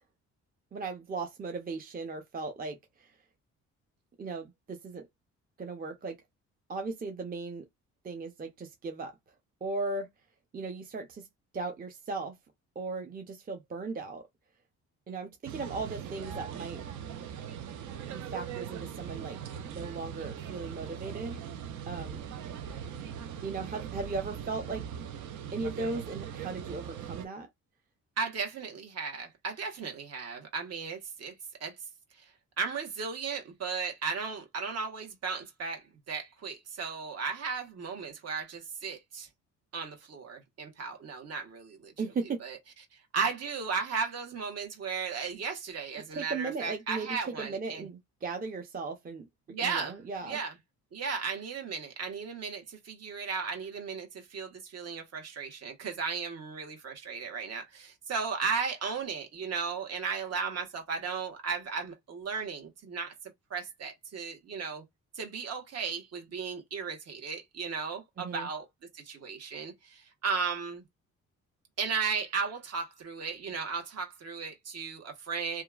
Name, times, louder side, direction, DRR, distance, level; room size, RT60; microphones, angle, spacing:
voice 1, 0.7-3.1 4.2-5.1 5.6-6.2 6.7-7.7 8.0-9.2 9.6-10.1 10.5-11.3 11.5-12.4 12.8-14.2 15.1-16.8 18.1-19.4 19.6-21.4 21.9-22.2 23.4-24.9 25.5-27.5 42.0-42.4 46.1-49.3 49.6-50.4 68.2-68.5, right 3 dB, 30° right, 0.6 m, -37 dB
sound 1, 15.4-27.3, right 8 dB, 75° right, 0.6 m, -40 dB
voice 2, 28.2-31.3 31.6-31.7 32.6-39.3 39.7-41.9 42.4-42.6 43.1-47.9 49.5-50.0 50.2-50.5 50.9-63.1 63.5-64.8 65.1-68.7 68.9-70.8 71.8-75.6, right 5 dB, 55° right, 1.2 m, -35 dB
2.8 x 2.3 x 2.3 m
cardioid pair, 90°, 30 cm